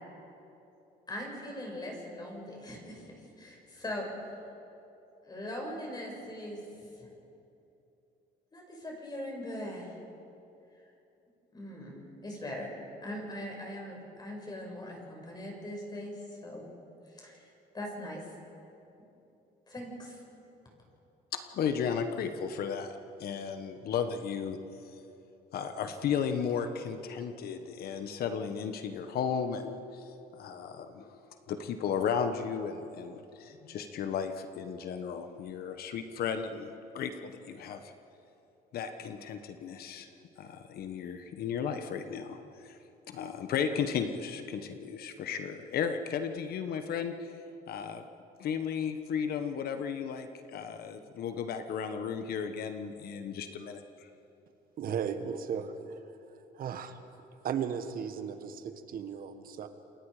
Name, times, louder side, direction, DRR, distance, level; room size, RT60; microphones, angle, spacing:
voice 1, 1.1-4.1 5.2-6.6 7.0-7.1 8.5-9.9 11.5-12.7 13.0-16.2 16.4-16.7 17.1-17.4 17.7-18.2 19.7-20.2, left 1 dB, 25° left, -1 dB, 6.3 m, -40 dB
voice 2, 21.3-24.6 25.5-30.0 30.3-31.2 31.5-37.9 38.7-40.1 40.4-42.8 43.1-47.3 47.7-48.0 48.4-54.1, left 7 dB, 65° left, 8 dB, 1.3 m, -34 dB
voice 3, 54.8-56.0 56.6-57.0 57.4-59.7, right 7 dB, 60° right, 9 dB, 1.6 m, -35 dB
28.0 x 23.5 x 5.1 m, 2.8 s
cardioid pair, 110°, 17 cm